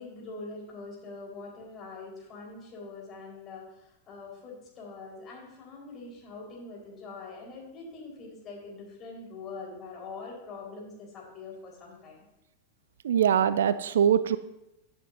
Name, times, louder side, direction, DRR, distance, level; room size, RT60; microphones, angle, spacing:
voice 1, 0.0-12.2, left 3 dB, 30° left, -2 dB, 4.5 m, -43 dB
voice 2, 13.0-14.4, right 9 dB, 60° right, 15 dB, 0.4 m, -23 dB
16.0 x 8.6 x 2.7 m, 0.92 s
figure-of-eight pair, 90°, 0 cm